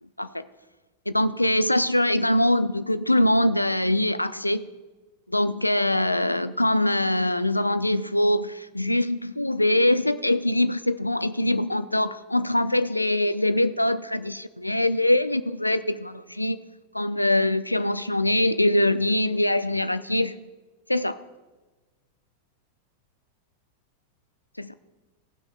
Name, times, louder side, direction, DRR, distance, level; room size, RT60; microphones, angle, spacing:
voice 1, 1.1-4.7 5.3-16.6 16.9-20.5 20.9-21.2 24.6-24.7, left 1 dB, 85° left, 14 dB, 0.4 m, -23 dB
16.0 x 6.0 x 3.7 m, 1.2 s
figure-of-eight pair, 90°, 0 cm